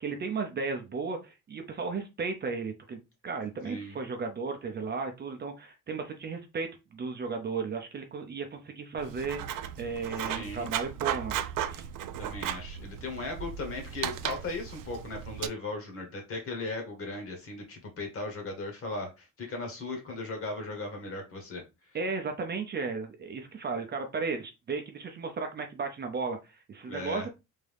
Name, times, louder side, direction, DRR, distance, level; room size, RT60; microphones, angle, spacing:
voice 1, 0.0-3.0 3.2-9.4 9.8-11.4 11.7-11.9 21.9-27.3, right 4 dB, 30° right, 4 dB, 0.5 m, -34 dB
voice 2, 3.6-4.0 10.2-10.7 12.2-21.6 26.9-27.3, left 2 dB, 45° left, 3 dB, 1.3 m, -37 dB
Writing, 9.0-15.5, right 10 dB, 85° right, 0.5 m, -36 dB
3.6 x 2.7 x 3.4 m, 0.26 s
cardioid pair, 170°, 32 cm